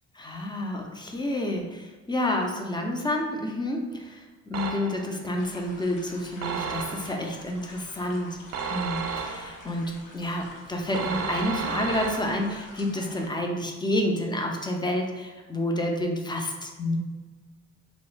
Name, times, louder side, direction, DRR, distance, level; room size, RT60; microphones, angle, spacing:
voice 1, 0.1-17.0, left 1 dB, 15° left, 2 dB, 0.4 m, -29 dB
sound 1, 4.5-5.2 6.4-7.3 8.5-9.7 10.9-12.6, right 6 dB, 60° right, 0.5 m, -33 dB
sound 2, 5.4-13.3, left 2 dB, 85° left, 0.7 m, -48 dB
3.0 x 2.3 x 3.1 m, 1.3 s
cardioid pair, 90°, 30 cm